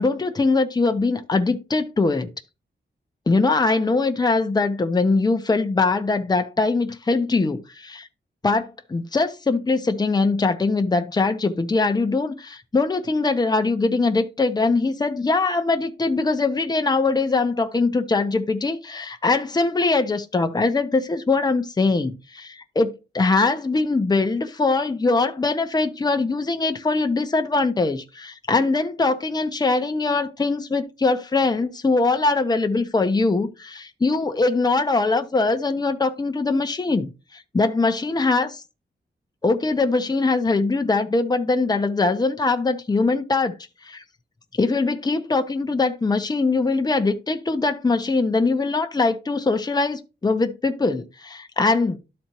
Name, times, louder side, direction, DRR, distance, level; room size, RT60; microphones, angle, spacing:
voice 1, 0.0-2.3 3.3-8.1 8.4-38.6 39.4-43.5 43.8-44.0 44.6-52.0, left 3 dB, 20° left, 0.8 m, -22 dB
12.5 x 4.3 x 2.9 m
wide cardioid pair, 170°, 19 cm